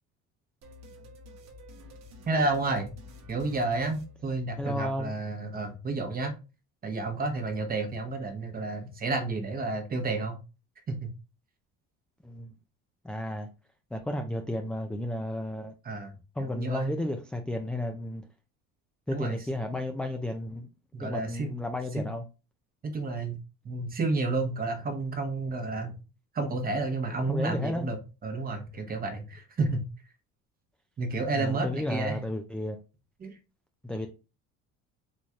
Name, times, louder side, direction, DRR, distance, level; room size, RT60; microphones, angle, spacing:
sound 1, 0.6-4.9, left 2 dB, 60° right, 0.9 m, -50 dB
voice 1, 2.3-2.9 3.3-6.3 6.8-10.4 10.9-11.1 15.8-17.0 19.1-19.4 20.9-21.5 21.9-22.1 22.8-23.4 23.6-26.0 26.3-29.8 31.0-32.2 33.2-33.4, right 3 dB, 30° right, 1.0 m, -31 dB
voice 2, 4.6-5.1 12.2-12.5 13.0-13.5 13.9-15.7 16.4-18.2 19.1-20.7 21.0-22.2 27.3-27.9 31.3-32.8 33.8-34.1, left 1 dB, 5° left, 0.3 m, -33 dB
4.1 x 3.1 x 2.3 m
cardioid pair, 120°, 31 cm